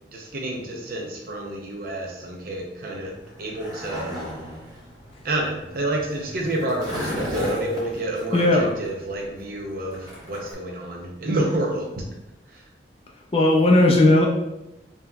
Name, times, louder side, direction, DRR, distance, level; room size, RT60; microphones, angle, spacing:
voice 1, 0.1-4.2 5.2-11.9 12.5-12.6, right 1 dB, 50° right, -1 dB, 0.6 m, -29 dB
Skateboard, 3.1-10.5, equal, 20° right, 1.0 m, -34 dB
voice 2, 8.3-8.7 13.3-14.3, left 2 dB, 30° left, -1 dB, 0.4 m, -16 dB
5.4 x 2.8 x 2.3 m, 0.93 s
head